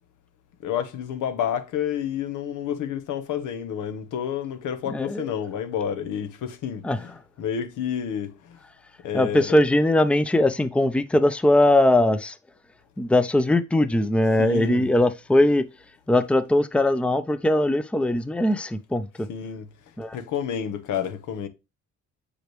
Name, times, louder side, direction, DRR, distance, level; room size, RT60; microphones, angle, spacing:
voice 1, 0.6-7.1 7.4-8.6 9.0-9.6 14.4-14.8 19.3-21.5, left 8 dB, 85° left, 1.1 m, -30 dB
voice 2, 4.9-5.3 6.8-7.0 9.1-12.4 13.0-15.7 16.1-19.3 20.0-20.2, left 1 dB, 5° left, 0.5 m, -20 dB
6.4 x 5.0 x 3.0 m
cardioid pair, 90°, 30 cm